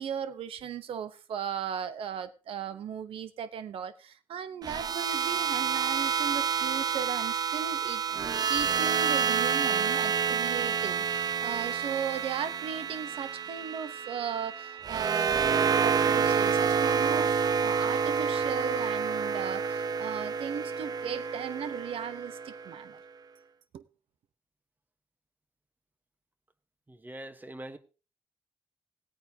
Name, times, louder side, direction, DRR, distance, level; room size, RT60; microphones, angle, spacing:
voice 1, 0.0-8.0 8.4-23.0 23.7-23.8, right 8 dB, 90° right, 0.9 m, -37 dB
sound 1, 4.6-22.8, right 6 dB, 45° right, 0.4 m, -28 dB
voice 2, 26.9-27.8, right 1 dB, 20° right, 1.2 m, -43 dB
17.0 x 9.0 x 2.8 m
cardioid pair, 90°, 9 cm